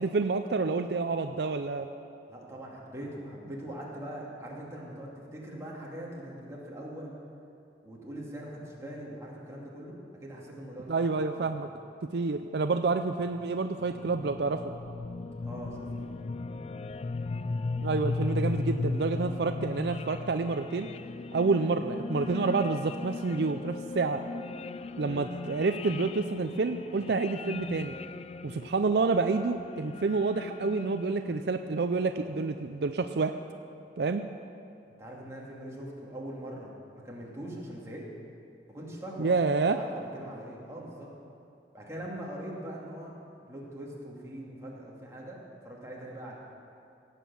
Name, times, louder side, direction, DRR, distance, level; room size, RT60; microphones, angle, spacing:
voice 1, 0.0-1.9 10.9-11.7 12.1-14.6 17.8-20.9 21.3-24.2 25.0-27.9 28.4-33.4 34.0-34.2 39.2-39.8, right 4 dB, 65° right, 8 dB, 0.5 m, -28 dB
voice 2, 2.3-7.1 7.8-11.1 11.3-11.6 15.4-16.1 35.0-38.1 38.7-39.3 39.7-41.1 41.7-43.1 43.5-46.4, right 1 dB, 15° right, -4 dB, 2.4 m, -42 dB
sound 1, 13.3-31.6, left 3 dB, 35° left, 0.3 m, -37 dB
17.0 x 8.4 x 7.1 m, 2.5 s
head